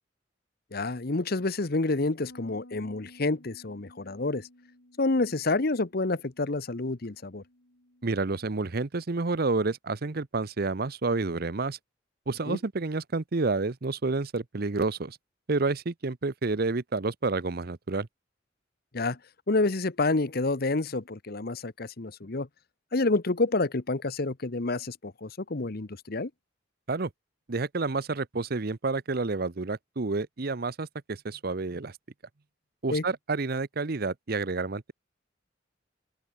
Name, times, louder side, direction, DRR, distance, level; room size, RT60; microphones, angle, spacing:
voice 1, 0.7-4.5 5.0-7.4 12.5-12.6 18.9-19.2 19.5-22.5 22.9-26.3 32.9-33.0, left 2 dB, 55° left, 1.0 m, -28 dB
Bass guitar, 2.3-8.5, left 1 dB, 70° left, 4.7 m, -56 dB
voice 2, 8.0-11.8 12.3-15.2 15.5-18.1 26.9-27.1 27.5-31.9 32.8-34.9, right 3 dB, 55° right, 0.8 m, -29 dB
open air
head